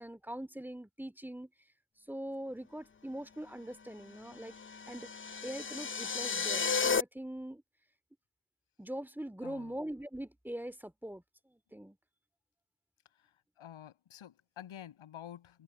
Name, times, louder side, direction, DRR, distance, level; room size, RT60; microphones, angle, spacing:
voice 1, 0.0-1.5 2.1-4.6 4.9-5.1 5.4-7.6 8.8-11.2 11.5-12.0, right 1 dB, 5° right, 2.5 m, -42 dB
sound 1, 4.4-7.0, left 5 dB, 25° left, 0.7 m, -33 dB
voice 2, 9.4-9.8 13.1-15.6, left 10 dB, 80° left, 7.1 m, -50 dB
open air
cardioid pair, 60°, 48 cm